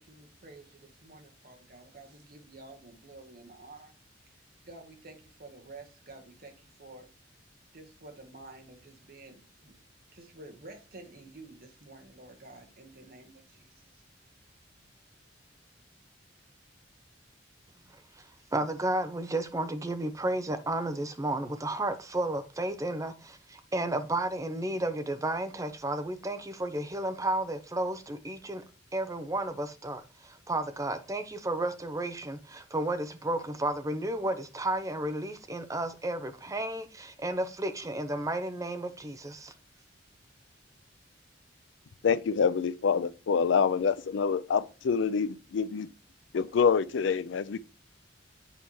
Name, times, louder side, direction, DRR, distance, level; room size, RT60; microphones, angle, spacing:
voice 1, 0.0-3.9 4.4-7.1 7.7-9.7 10.1-14.0, right 2 dB, 55° right, 1.3 m, -50 dB
voice 2, 17.9-28.6 28.9-39.5, right 1 dB, 15° right, 0.6 m, -32 dB
voice 3, 42.0-45.9 46.3-47.6, left 6 dB, 80° left, 0.4 m, -26 dB
8.1 x 4.2 x 3.1 m
head